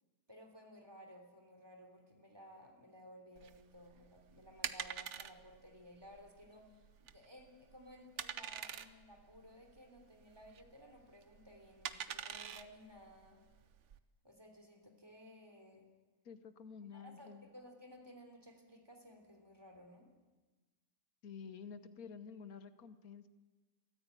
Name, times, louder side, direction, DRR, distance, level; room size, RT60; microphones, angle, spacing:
voice 1, 0.3-13.4 14.2-15.9 16.9-20.1, equal, 15° right, 4 dB, 3.2 m, -57 dB
sound 1, 3.4-14.0, right 8 dB, 55° right, 1.1 m, -46 dB
voice 2, 16.2-17.5 21.2-23.3, left 6 dB, 70° left, 11 dB, 1.5 m, -50 dB
23.0 x 14.0 x 9.2 m, 1.2 s
omnidirectional pair, 1.6 m